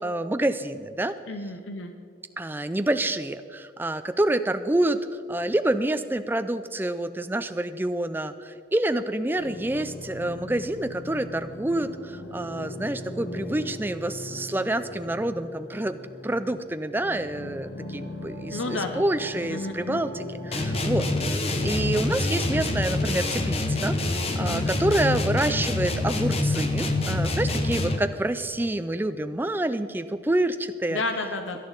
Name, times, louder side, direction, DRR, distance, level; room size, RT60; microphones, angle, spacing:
voice 1, 0.0-1.1 2.4-21.1 21.6-31.0, right 1 dB, 10° right, 10 dB, 0.4 m, -27 dB
voice 2, 1.3-1.9 18.5-19.0 19.5-20.0 24.4-24.7 30.9-31.6, left 3 dB, 85° left, 6 dB, 0.8 m, -31 dB
sound 1, 9.3-24.6, left 1 dB, 65° left, 1.5 m, -39 dB
sound 2, 20.5-28.2, left 2 dB, 30° left, 0.9 m, -26 dB
18.0 x 11.5 x 4.0 m, 2.3 s
head